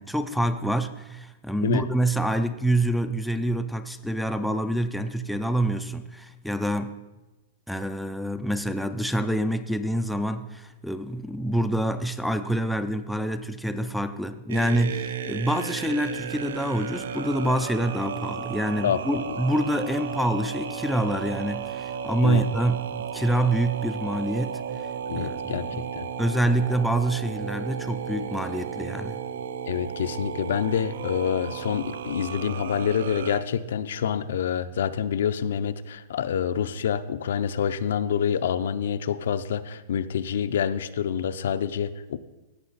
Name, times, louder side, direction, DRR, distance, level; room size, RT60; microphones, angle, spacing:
voice 1, 0.0-6.9 7.7-24.6 25.1-25.9 26.2-29.2, right 1 dB, ahead, 7 dB, 0.3 m, -26 dB
sound 1, 14.5-33.4, right 7 dB, 75° right, 0.5 m, -34 dB
voice 2, 18.8-19.4 22.2-22.4 25.1-25.7 25.9-26.1 29.7-42.2, left 8 dB, 75° left, 11 dB, 0.5 m, -27 dB
16.0 x 5.9 x 4.0 m, 1.1 s
supercardioid pair, 170°, 0 cm